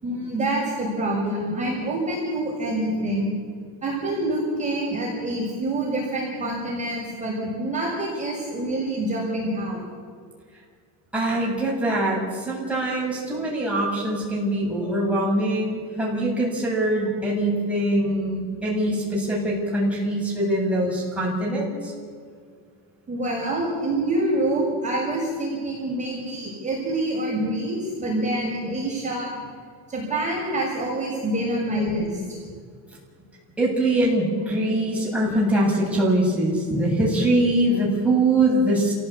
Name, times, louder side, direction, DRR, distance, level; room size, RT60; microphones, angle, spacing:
voice 1, 0.0-3.3 3.8-9.8 23.1-29.4 29.9-32.2 36.7-36.8, right 1 dB, 20° right, -4 dB, 6.5 m, -26 dB
voice 2, 11.1-21.9 33.6-38.9, right 1 dB, 5° right, -5 dB, 8.0 m, -23 dB
28.5 x 16.0 x 8.4 m, 2.1 s
cardioid pair, 130°, 39 cm